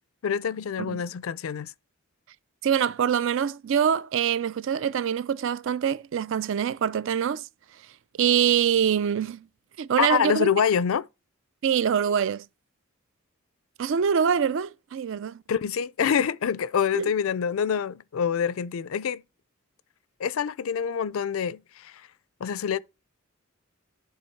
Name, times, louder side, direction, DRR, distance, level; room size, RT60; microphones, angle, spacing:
voice 1, 0.2-1.7 10.0-11.1 15.5-19.2 20.2-21.9 22.4-22.8, left 7 dB, 70° left, 0.4 m, -26 dB
voice 2, 2.6-7.5 8.2-9.4 9.8-10.5 11.6-12.4 13.8-15.4 16.9-17.1, right 8 dB, 60° right, 0.4 m, -24 dB
10.5 x 3.8 x 4.5 m
head